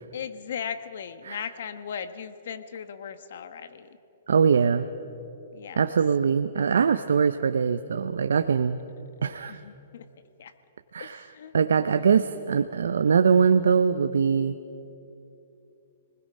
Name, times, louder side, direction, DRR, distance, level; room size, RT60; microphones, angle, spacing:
voice 1, 0.1-4.0 5.5-6.0 9.5-10.0 10.4-10.5 11.0-11.5 12.0-12.1, left 7 dB, 65° left, 11 dB, 1.3 m, -38 dB
voice 2, 4.3-4.9 5.8-8.8 9.2-9.6 10.9-11.2 11.5-14.6, right 6 dB, 85° right, 9 dB, 0.7 m, -22 dB
30.0 x 20.5 x 5.5 m, 2.8 s
hypercardioid pair, 150°, 0 cm